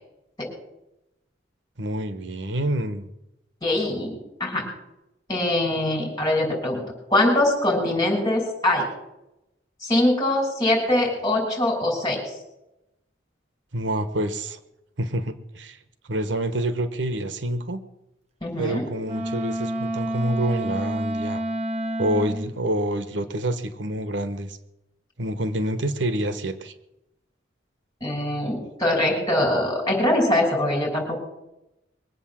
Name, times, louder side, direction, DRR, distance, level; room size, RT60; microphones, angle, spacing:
voice 1, 1.8-3.1 13.7-14.6 15.0-15.8 16.1-17.8 18.6-21.4 22.0-24.6 25.2-26.7, right 1 dB, 80° right, 11 dB, 1.2 m, -27 dB
voice 2, 3.6-4.1 4.4-4.7 5.3-6.8 7.1-8.8 9.8-12.4 18.4-18.9 28.0-31.2, left 1 dB, 20° left, 1 dB, 6.3 m, -23 dB
Wind instrument woodwind instrument, 19.0-22.5, right 1 dB, 35° right, 1.2 m, -28 dB
22.5 x 8.4 x 7.4 m, 0.89 s
head